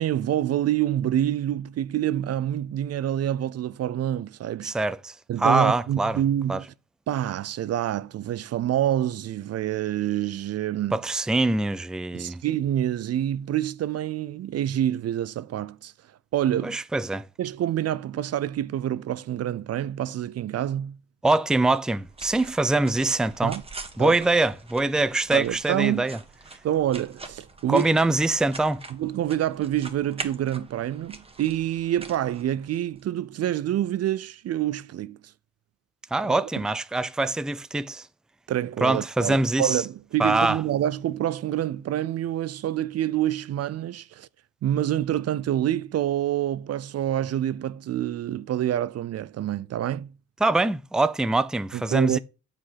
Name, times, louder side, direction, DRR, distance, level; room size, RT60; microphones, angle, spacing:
voice 1, 0.0-4.7 5.3-6.7 7.1-11.0 12.1-15.9 16.3-16.8 17.4-21.0 23.4-23.6 24.0-24.2 25.3-26.1 26.6-28.0 28.9-35.2 36.6-36.7 38.5-44.3 44.6-50.1 51.7-52.2, right 11 dB, 55° right, 0.5 m, -27 dB
voice 2, 4.6-6.2 6.5-6.6 10.9-12.4 16.6-17.3 21.2-23.6 24.0-26.2 27.7-28.8 36.1-38.1 38.8-39.8 40.2-40.6 50.4-52.2, right 2 dB, ahead, 0.5 m, -24 dB
sound 1, 21.7-33.0, right 3 dB, 20° right, 1.6 m, -43 dB
8.3 x 5.1 x 5.7 m
cardioid pair, 90°, 30 cm